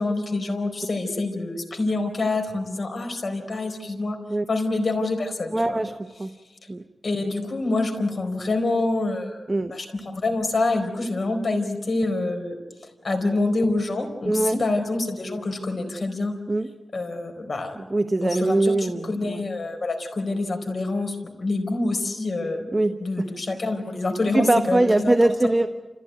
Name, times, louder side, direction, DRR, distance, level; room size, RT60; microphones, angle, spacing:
voice 1, 0.0-4.2 4.5-5.8 7.0-16.3 16.9-17.8 18.2-22.7 23.0-25.1, left 2 dB, 55° left, 4 dB, 4.3 m, -26 dB
voice 2, 5.5-6.3 6.7-6.8 9.5-9.8 14.3-14.6 16.5-16.7 17.8-19.4 22.7-23.3 24.3-25.7, right 2 dB, 25° right, 8 dB, 0.9 m, -22 dB
29.5 x 15.5 x 9.4 m, 1.2 s
wide cardioid pair, 95°, 0 cm